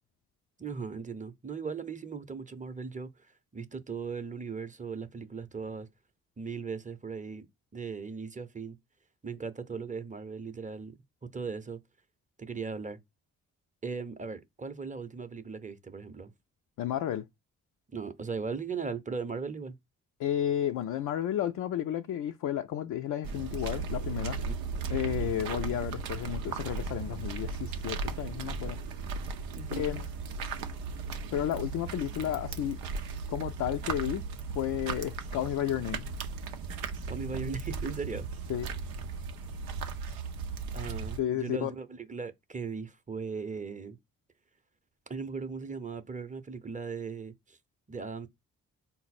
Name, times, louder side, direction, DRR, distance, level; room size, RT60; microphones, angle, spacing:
voice 1, 0.6-3.3 3.5-5.9 6.4-7.5 7.7-8.8 9.2-10.9 11.2-11.8 12.4-13.0 13.8-16.3 17.9-19.8 24.5-24.6 25.2-25.4 29.5-29.9 37.1-38.3 40.7-44.0 45.1-47.6 47.9-48.3, right 5 dB, 20° right, 0.7 m, -38 dB
voice 2, 16.8-17.3 20.2-24.4 24.9-28.8 29.8-30.0 31.3-32.8 33.3-34.3 34.5-36.0 38.5-38.7 41.2-41.7, left 11 dB, 55° left, 0.4 m, -32 dB
sound 1, 23.2-41.2, right 5 dB, 85° right, 0.6 m, -36 dB
4.0 x 2.0 x 4.1 m
hypercardioid pair, 45°, 36 cm